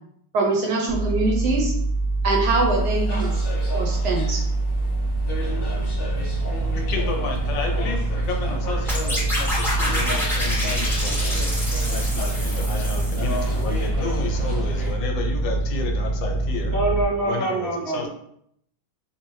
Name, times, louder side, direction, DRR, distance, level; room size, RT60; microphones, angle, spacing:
voice 1, 0.3-1.8 2.2-3.4 3.7-4.4, right 2 dB, 65° right, 0 dB, 1.1 m, -23 dB
sound 1, 0.9-17.0, right 2 dB, 85° right, 1.4 m, -25 dB
sound 2, 2.4-14.9, left 1 dB, 35° left, 1.1 m, -35 dB
voice 2, 6.8-16.7 17.2-18.1, left 4 dB, 80° left, 3 dB, 1.3 m, -32 dB
sound 3, 8.9-13.7, left 1 dB, ahead, 0.5 m, -28 dB
voice 3, 16.7-18.1, right 2 dB, 50° right, -6 dB, 0.8 m, -24 dB
3.6 x 2.6 x 3.1 m, 0.71 s
omnidirectional pair, 2.1 m